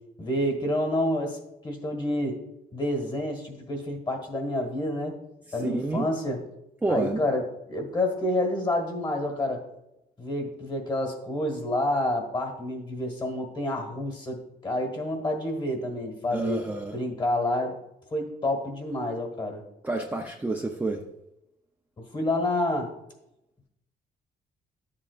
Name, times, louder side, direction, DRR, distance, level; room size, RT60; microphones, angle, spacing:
voice 1, 0.2-1.4 1.6-2.4 2.7-5.2 5.5-6.4 6.9-7.4 7.7-9.6 10.2-16.6 16.9-17.7 18.1-19.6 22.0-22.9, left 1 dB, 25° left, 4 dB, 1.7 m, -28 dB
voice 2, 5.6-6.1 6.8-7.3 16.3-17.0 19.8-21.0, right 2 dB, 10° right, 1 dB, 0.5 m, -28 dB
12.5 x 7.5 x 2.4 m, 0.87 s
cardioid pair, 150°, 17 cm